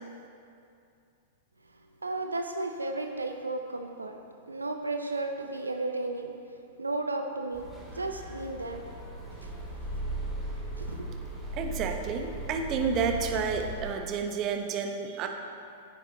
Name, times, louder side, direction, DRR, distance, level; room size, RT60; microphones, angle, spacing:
voice 1, 2.0-4.2 4.5-6.3 6.8-8.8 9.4-9.5 10.8-11.0, right 2 dB, 85° right, 5 dB, 0.5 m, -33 dB
sound 1, 7.5-14.0, right 1 dB, 5° right, 2.2 m, -38 dB
voice 2, 11.5-15.3, right 6 dB, 35° right, 4 dB, 0.8 m, -30 dB
9.8 x 8.9 x 3.0 m, 2.5 s
figure-of-eight pair, 100°, 0 cm